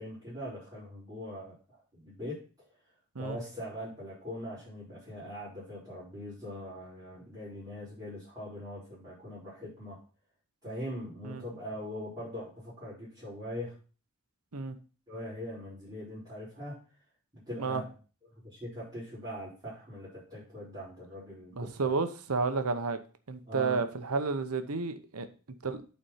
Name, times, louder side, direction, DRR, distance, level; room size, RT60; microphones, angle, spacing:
voice 1, 0.0-2.4 3.2-10.0 10.6-13.7 15.1-16.8 17.3-17.8 18.4-21.9 23.5-23.8, equal, 15° right, -12 dB, 4.6 m, -41 dB
voice 2, 21.5-23.0 23.3-25.3 25.6-25.8, right 4 dB, 75° right, 9 dB, 0.9 m, -31 dB
8.4 x 4.4 x 5.7 m, 0.37 s
head